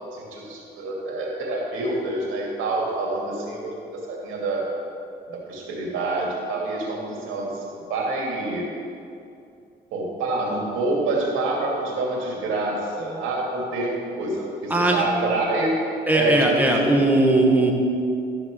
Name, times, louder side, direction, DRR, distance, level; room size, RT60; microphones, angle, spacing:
voice 1, 0.0-4.6 5.3-7.6 7.9-8.7 9.9-15.8 16.1-16.9, right 2 dB, 90° right, -2 dB, 2.5 m, -27 dB
voice 2, 14.7-15.0 16.1-17.7, right 2 dB, 10° right, 0 dB, 1.7 m, -19 dB
12.5 x 6.0 x 6.3 m, 2.6 s
cardioid pair, 90°, 20 cm